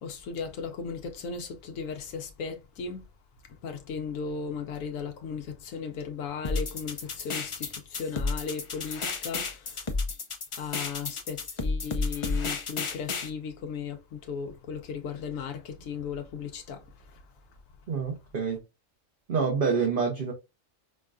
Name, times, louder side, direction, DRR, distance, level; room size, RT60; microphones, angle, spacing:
voice 1, 0.0-3.1 3.4-9.9 10.6-17.2, left 6 dB, 90° left, 1.0 m, -36 dB
sound 1, 6.4-13.3, left 3 dB, 55° left, 0.3 m, -32 dB
voice 2, 17.9-18.6 19.3-20.3, right 5 dB, 50° right, 0.9 m, -27 dB
5.4 x 2.2 x 2.4 m
omnidirectional pair, 1.3 m